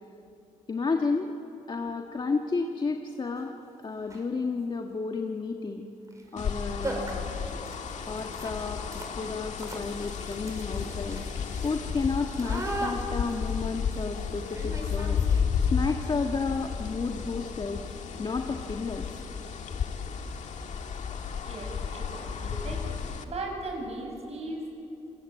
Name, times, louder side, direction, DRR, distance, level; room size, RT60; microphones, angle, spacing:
voice 1, 0.7-1.3 1.7-3.5 3.8-5.9 6.3-7.2 7.9-8.8 9.2-11.2 11.6-15.2 15.7-17.8 18.2-19.1, left 4 dB, 35° left, 3 dB, 1.6 m, -31 dB
sound 1, 3.4-3.5 4.0-4.4 6.1-6.2 6.5-6.6 6.8-15.7, right 1 dB, 25° right, 5.3 m, -39 dB
sound 2, 6.4-23.2, left 6 dB, 60° left, 2.0 m, -33 dB
voice 2, 21.4-24.7, right 2 dB, 50° right, 1 dB, 7.8 m, -38 dB
27.5 x 21.0 x 9.2 m, 2.9 s
cardioid pair, 85°, 14 cm